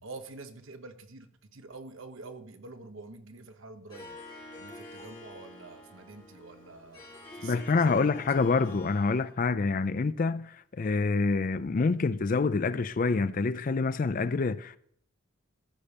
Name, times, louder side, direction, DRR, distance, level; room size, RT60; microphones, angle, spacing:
voice 1, 0.0-4.2 4.6-8.9, right 3 dB, 70° right, 1.1 m, -47 dB
Harp, 3.9-9.4, left 1 dB, 20° left, 4.1 m, -47 dB
voice 2, 7.4-14.8, left 4 dB, 40° left, 0.4 m, -27 dB
14.5 x 5.4 x 5.2 m
head